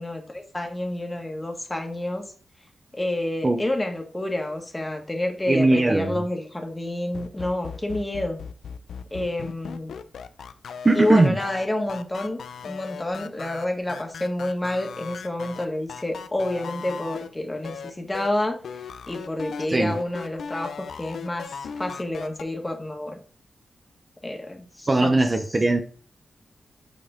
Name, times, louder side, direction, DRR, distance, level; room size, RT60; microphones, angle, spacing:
voice 1, 0.0-2.2 2.9-8.4 9.1-9.9 10.9-18.6 19.1-21.5 21.8-23.2 24.2-25.2, left 1 dB, 20° left, 3 dB, 1.7 m, -29 dB
voice 2, 5.5-6.2 10.8-11.4 19.7-19.9 24.9-25.8, right 2 dB, 30° right, 5 dB, 0.7 m, -19 dB
sound 1, 7.1-17.3 17.6-18.3 18.6-22.4, left 6 dB, 85° left, 0.5 m, -37 dB
8.1 x 4.2 x 3.7 m, 0.42 s
cardioid pair, 85°, 0 cm